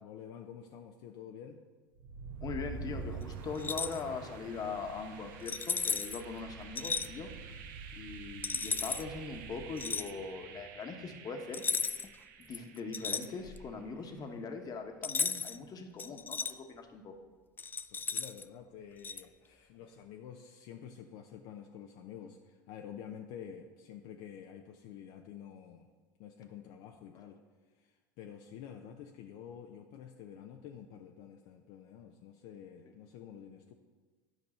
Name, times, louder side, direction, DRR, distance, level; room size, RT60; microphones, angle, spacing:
voice 1, 0.0-1.6 17.9-25.9 26.2-27.4 27.7-33.7, left 8 dB, 60° left, 3 dB, 0.6 m, -49 dB
sound 1, 1.9-13.8, right 5 dB, 70° right, 0.8 m, -47 dB
voice 2, 2.4-7.3 7.9-11.7 12.4-17.2, left 4 dB, 35° left, 5 dB, 1.2 m, -41 dB
sound 2, 3.6-4.0 5.5-6.2 6.8-7.1 8.4-9.0 9.8-10.1 11.5-12.2 12.5-13.7 15.0-15.6 16.0-16.5 17.6-18.4 19.0-19.2, left 5 dB, 20° left, 0.3 m, -34 dB
11.0 x 5.3 x 4.3 m, 1.4 s
hypercardioid pair, 85°, 11 cm